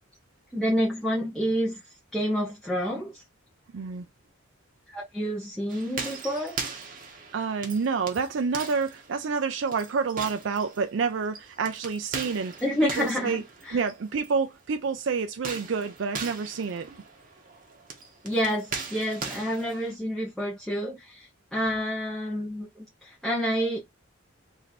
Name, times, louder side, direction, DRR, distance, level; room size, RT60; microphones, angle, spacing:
voice 1, 0.5-1.8 2.1-3.2 4.9-6.6 12.6-13.8 18.2-23.8, equal, ahead, 0.9 m, -29 dB
voice 2, 3.7-4.1 7.3-12.5 12.8-13.4 13.7-17.0, right 5 dB, 65° right, 0.4 m, -28 dB
sound 1, 5.7-14.3 15.3-19.9, right 5 dB, 40° right, 1.0 m, -39 dB
3.2 x 2.7 x 4.0 m
head